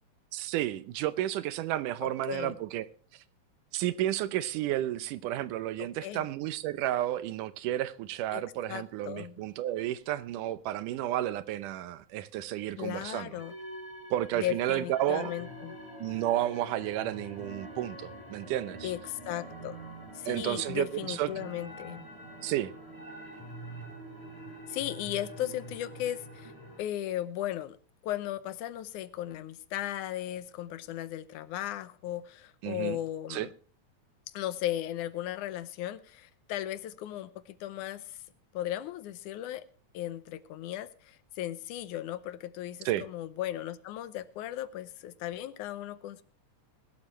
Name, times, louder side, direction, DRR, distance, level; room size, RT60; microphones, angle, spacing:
voice 1, 0.3-2.9 3.1-3.2 3.7-13.3 14.1-15.3 16.0-18.9 20.3-21.3 22.4-22.7 32.6-33.0 33.3-33.5 42.9-43.1, right 13 dB, 85° right, 2.4 m, -32 dB
voice 2, 2.0-2.6 5.8-6.2 8.3-8.4 8.7-9.4 12.8-13.5 14.4-15.8 18.8-19.8 20.1-22.0 24.7-26.5 26.8-27.8 28.0-33.5 34.3-38.2 38.5-39.6 39.9-46.2, left 13 dB, 80° left, 2.2 m, -36 dB
sound 1, 13.4-26.8, right 1 dB, 5° left, 6.5 m, -45 dB
21.0 x 12.0 x 3.2 m
omnidirectional pair, 3.6 m